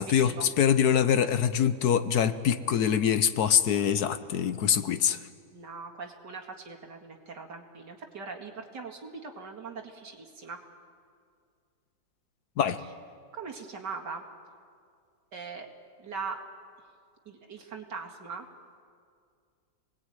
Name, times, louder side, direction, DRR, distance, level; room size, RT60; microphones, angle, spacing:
voice 1, 0.0-5.2 12.6-12.8, left 8 dB, 65° left, 11 dB, 1.4 m, -24 dB
voice 2, 5.5-10.6 13.3-14.2 15.3-15.7 16.0-16.4 17.3-18.5, right 5 dB, 75° right, 2 dB, 2.8 m, -40 dB
29.0 x 20.0 x 9.1 m, 2.2 s
omnidirectional pair, 1.9 m